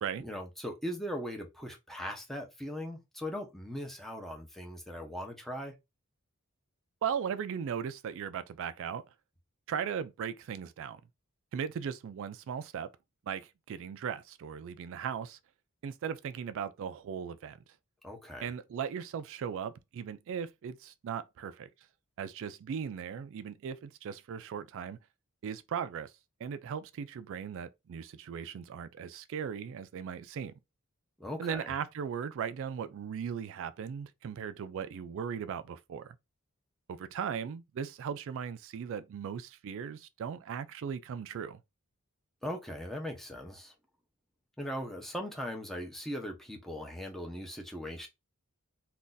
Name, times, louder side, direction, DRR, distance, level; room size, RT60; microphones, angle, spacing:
voice 1, 0.2-5.7 18.0-18.5 31.2-31.7 42.4-43.7 44.6-48.1, equal, ahead, 0.6 m, -39 dB
voice 2, 7.0-9.0 9.7-11.0 11.5-12.9 13.3-15.4 15.8-17.6 18.4-21.7 22.2-25.0 25.4-26.1 26.4-30.5 31.4-36.2 36.9-41.6, right 7 dB, 60° right, 0.3 m, -38 dB
2.5 x 2.3 x 3.8 m
head